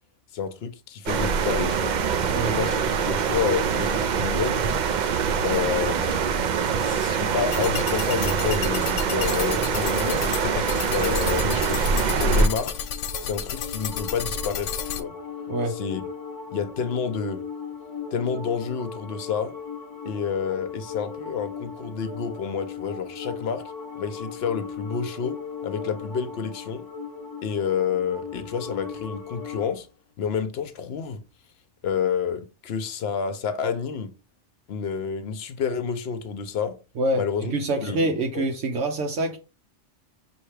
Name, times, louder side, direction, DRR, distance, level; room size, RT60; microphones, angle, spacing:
voice 1, 0.3-1.9 2.5-4.6 5.4-6.3 6.8-10.3 10.9-12.9 13.2-15.1 15.7-16.0 16.5-17.4 18.1-19.5 20.0-23.6 24.0-25.4 25.6-26.8 27.4-29.9 30.2-31.2 31.8-34.1 34.7-36.8 37.2-37.5 37.8-38.0 38.3-38.5, left 7 dB, 65° left, 0.9 m, -29 dB
sound 1, 1.1-12.5, right 6 dB, 60° right, 0.5 m, -24 dB
sound 2, 7.5-15.0, left 7 dB, 90° left, 0.9 m, -32 dB
sound 3, 12.2-29.7, left 6 dB, 25° left, 0.5 m, -37 dB
voice 2, 37.0-39.4, right 1 dB, 80° right, 1.0 m, -26 dB
5.6 x 2.8 x 3.2 m
omnidirectional pair, 1.2 m